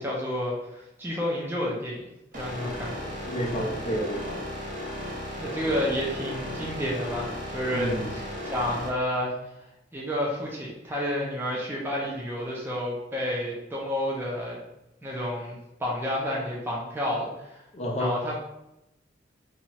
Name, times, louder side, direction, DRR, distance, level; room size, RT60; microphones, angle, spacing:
voice 1, 0.0-2.1 2.4-3.1 5.4-9.3 9.9-14.6 15.0-17.6 18.0-18.4, left 1 dB, 10° right, -4 dB, 0.5 m, -30 dB
sound 1, 2.3-8.9, left 1 dB, 45° right, 0.8 m, -35 dB
voice 2, 3.2-4.5 5.6-5.7 7.7-8.1 17.7-18.2, equal, 35° left, -1 dB, 0.6 m, -30 dB
2.8 x 2.3 x 3.0 m, 0.87 s
head